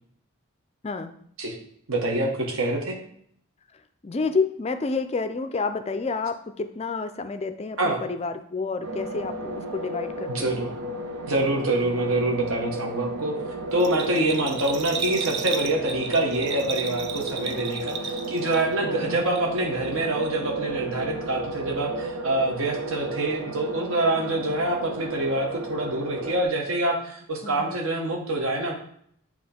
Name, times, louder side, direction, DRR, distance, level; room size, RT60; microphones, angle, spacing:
voice 1, 1.9-3.0 7.8-8.0 10.3-10.7 11.3-13.4 13.7-28.8, right 2 dB, 65° right, 1 dB, 1.2 m, -26 dB
voice 2, 4.0-10.6 18.8-19.2 27.4-27.7, left 4 dB, 25° left, 9 dB, 0.3 m, -29 dB
sound 1, 8.8-26.4, right 2 dB, 90° right, 0.8 m, -33 dB
Bell, 13.8-18.9 19.2-19.9 20.2-20.3, right 6 dB, 50° right, 0.5 m, -34 dB
7.5 x 3.0 x 4.3 m, 0.66 s
head